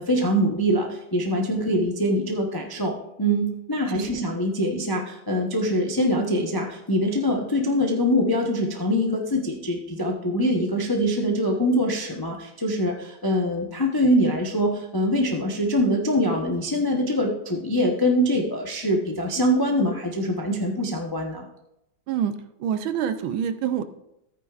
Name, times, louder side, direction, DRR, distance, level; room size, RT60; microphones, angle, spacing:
voice 1, 0.0-2.9 3.2-21.5, equal, 30° left, 0 dB, 0.4 m, -24 dB
voice 2, 22.6-23.8, right 8 dB, 75° right, 11 dB, 1.4 m, -27 dB
14.0 x 9.2 x 2.4 m, 0.83 s
omnidirectional pair, 2.3 m